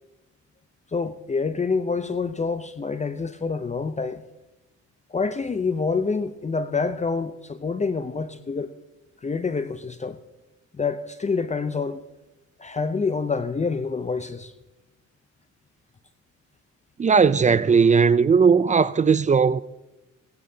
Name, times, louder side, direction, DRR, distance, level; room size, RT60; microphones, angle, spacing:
voice 1, 0.9-4.2 5.1-8.7 9.2-10.2 10.8-12.0 12.6-14.5, left 4 dB, 25° left, 0.6 m, -27 dB
voice 2, 17.0-19.6, right 5 dB, 25° right, 0.4 m, -17 dB
17.5 x 16.0 x 2.8 m
cardioid pair, 90°, 30 cm